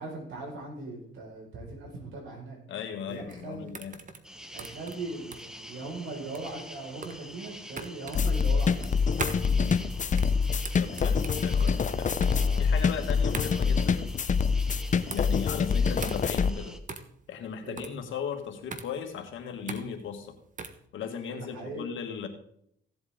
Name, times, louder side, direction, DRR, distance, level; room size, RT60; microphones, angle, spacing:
voice 1, 0.0-2.6 3.1-3.7 4.5-8.8 17.6-17.8 21.5-21.9, right 3 dB, 80° right, -1 dB, 5.2 m, -39 dB
voice 2, 2.7-4.0 9.6-9.9 10.8-12.1 12.6-14.1 15.1-16.7 17.3-20.3 20.9-22.3, left 7 dB, 75° left, 5 dB, 1.9 m, -37 dB
sound 1, 3.1-20.9, right 4 dB, 40° right, 1.3 m, -42 dB
sound 2, 4.2-16.8, equal, 5° right, 1.1 m, -46 dB
sound 3, 8.1-16.5, left 5 dB, 40° left, 0.7 m, -25 dB
16.0 x 7.9 x 3.8 m, 0.69 s
cardioid pair, 90°, 20 cm